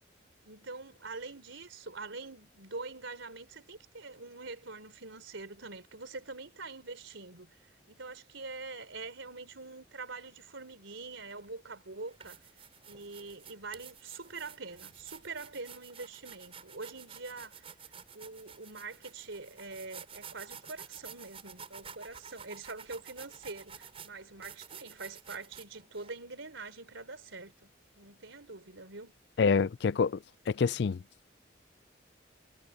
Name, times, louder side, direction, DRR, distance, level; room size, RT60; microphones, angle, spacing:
voice 1, 0.4-7.6 7.9-12.4 12.8-17.6 18.1-29.1, right 3 dB, 90° right, 4.0 m, -44 dB
sound 1, 11.3-11.5 12.0-26.1, right 7 dB, 30° right, 5.5 m, -50 dB
voice 2, 29.4-31.0, left 5 dB, 60° left, 0.4 m, -27 dB
head